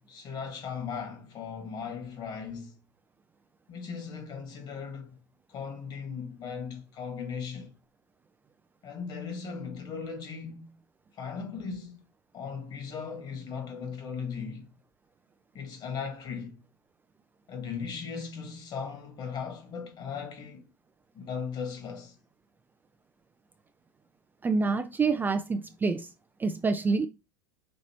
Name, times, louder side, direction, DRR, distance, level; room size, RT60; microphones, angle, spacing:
voice 1, 0.1-2.8 3.7-5.2 5.5-7.7 8.8-10.8 11.1-12.0 12.3-14.7 15.5-16.6 17.5-20.7 21.1-22.2, left 6 dB, 40° left, 1.8 m, -37 dB
voice 2, 24.4-26.1 26.4-27.1, right 4 dB, 15° right, 0.4 m, -27 dB
5.3 x 2.9 x 3.0 m
hypercardioid pair, 85°, 11 cm